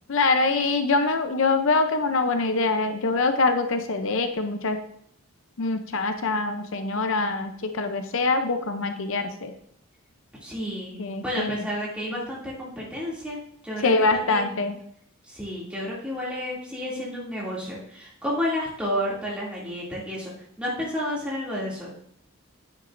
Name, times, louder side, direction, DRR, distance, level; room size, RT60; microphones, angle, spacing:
voice 1, 0.1-4.8 5.6-9.5 11.0-11.6 13.8-14.8, left 3 dB, 65° left, 7 dB, 0.6 m, -24 dB
voice 2, 10.4-14.6 15.3-21.9, equal, 5° right, -6 dB, 2.6 m, -31 dB
9.8 x 9.1 x 2.6 m, 0.68 s
head